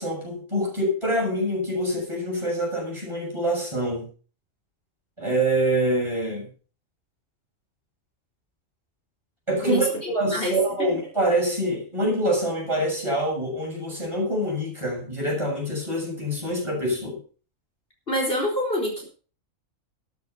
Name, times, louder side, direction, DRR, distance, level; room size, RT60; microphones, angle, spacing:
voice 1, 0.0-4.1 5.2-6.5 9.5-9.9 10.1-17.2, right 1 dB, 20° right, -2 dB, 7.3 m, -25 dB
voice 2, 9.6-11.0 18.1-19.0, equal, 45° left, 0 dB, 4.6 m, -26 dB
13.0 x 9.9 x 5.4 m, 0.39 s
omnidirectional pair, 1.3 m